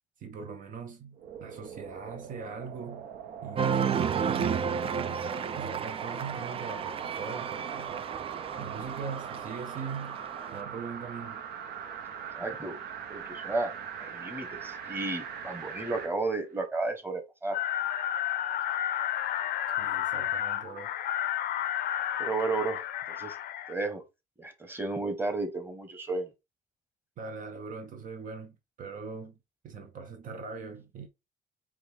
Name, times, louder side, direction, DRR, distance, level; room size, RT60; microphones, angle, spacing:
voice 1, 0.2-3.1 3.4-5.2 5.6-8.1 8.6-10.2 10.5-11.4 19.8-20.9 27.2-29.4 29.6-31.1, right 5 dB, 55° right, 0.7 m, -41 dB
sound 1, 1.2-16.1 16.6-16.7, right 7 dB, 75° right, 0.9 m, -42 dB
Cheering, 3.6-10.6, right 7 dB, 35° right, 0.4 m, -32 dB
voice 2, 12.3-12.8 13.1-13.7 14.0-17.6 22.2-23.4 23.7-24.0 24.4-26.3, right 3 dB, 15° right, 1.1 m, -33 dB
sound 2, 17.5-23.7, left 11 dB, 65° left, 0.6 m, -31 dB
4.8 x 2.3 x 3.5 m
cardioid pair, 110°, 17 cm